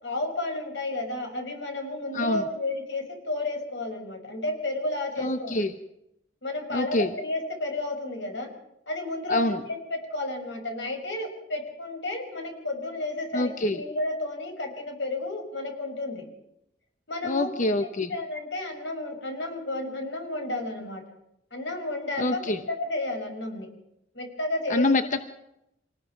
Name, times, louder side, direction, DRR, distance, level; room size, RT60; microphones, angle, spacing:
voice 1, 0.0-5.7 6.4-8.5 8.9-16.2 17.1-17.5 17.8-21.0 21.5-23.7 24.1-24.9, left 2 dB, 90° left, 4 dB, 5.7 m, -32 dB
voice 2, 5.2-5.7 6.7-7.1 9.3-9.6 13.3-13.8 17.2-18.1 22.2-22.6 24.7-25.2, left 2 dB, 45° left, 8 dB, 1.0 m, -25 dB
26.0 x 19.0 x 6.1 m, 0.85 s
head